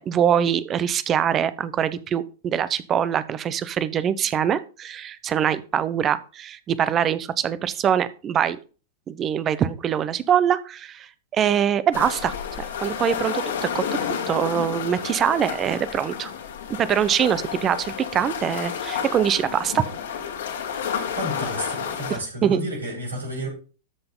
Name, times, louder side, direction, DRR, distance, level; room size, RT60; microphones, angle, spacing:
voice 1, 0.0-8.6 9.1-16.3 16.8-19.8 22.1-22.6, right 9 dB, 30° right, 16 dB, 0.9 m, -23 dB
sound 1, 11.9-22.2, left 7 dB, 70° left, 2.2 m, -30 dB
voice 2, 21.1-23.5, right 1 dB, 85° right, -3 dB, 6.1 m, -31 dB
13.0 x 5.9 x 3.9 m, 0.37 s
hypercardioid pair, 100°, 0 cm